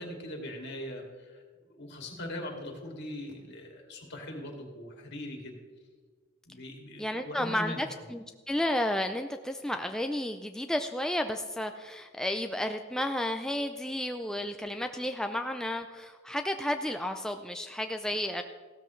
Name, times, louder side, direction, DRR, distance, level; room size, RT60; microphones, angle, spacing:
voice 1, 0.0-1.4 1.8-5.6 6.5-7.9, left 1 dB, 60° left, 1 dB, 2.4 m, -40 dB
voice 2, 7.0-18.4, left 1 dB, 5° left, 5 dB, 0.4 m, -32 dB
16.0 x 13.0 x 3.2 m, 1.5 s
head